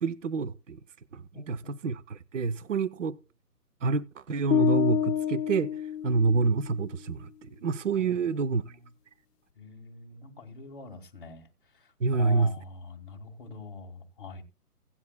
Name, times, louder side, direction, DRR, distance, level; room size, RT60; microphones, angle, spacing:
voice 1, 0.0-0.8 1.1-3.2 3.8-8.6 12.0-12.5, right 4 dB, 55° right, 0.6 m, -28 dB
voice 2, 1.3-1.7 8.0-8.8 9.6-11.5 12.1-14.4, left 4 dB, 35° left, 1.5 m, -44 dB
sound 1, 4.5-6.7, left 9 dB, 90° left, 0.6 m, -28 dB
16.5 x 9.7 x 2.2 m
hypercardioid pair, 165°, 47 cm